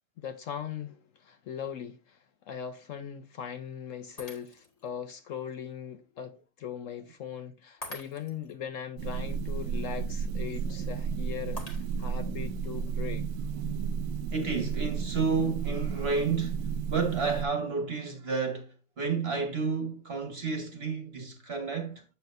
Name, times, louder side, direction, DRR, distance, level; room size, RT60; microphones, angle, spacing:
voice 1, 0.2-13.3, left 8 dB, 70° left, 0.8 m, -40 dB
Shatter, 4.2-4.9 5.4-5.5 7.8-8.5 11.6-12.3, equal, 25° left, 1.5 m, -45 dB
sound 1, 9.0-17.5, right 6 dB, 85° right, 1.2 m, -33 dB
voice 2, 13.6-22.0, right 5 dB, 40° right, 1.3 m, -31 dB
8.0 x 7.0 x 2.6 m
omnidirectional pair, 1.8 m